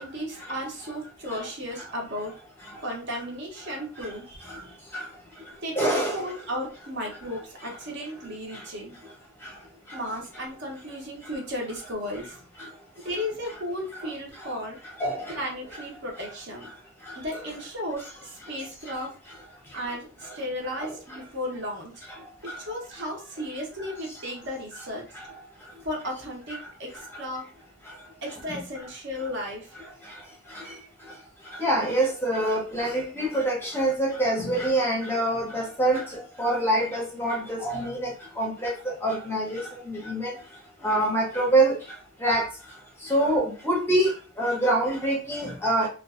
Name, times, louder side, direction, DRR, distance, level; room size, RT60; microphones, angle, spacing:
voice 1, 0.0-2.3 2.8-4.8 5.6-9.0 9.9-12.4 13.0-14.8 15.4-16.7 17.1-19.1 19.7-21.9 22.4-25.1 25.8-27.5 28.2-29.8, equal, 55° right, 0 dB, 0.8 m, -34 dB
voice 2, 5.8-6.2 15.0-15.4 30.6-30.7 31.6-36.0 36.4-38.1 38.4-38.7 39.0-39.6 39.9-40.3 40.8-41.7 42.2-42.5 43.1-44.1 44.4-45.9, right 1 dB, 10° left, -1 dB, 0.6 m, -25 dB
2.5 x 2.3 x 2.3 m, 0.37 s
head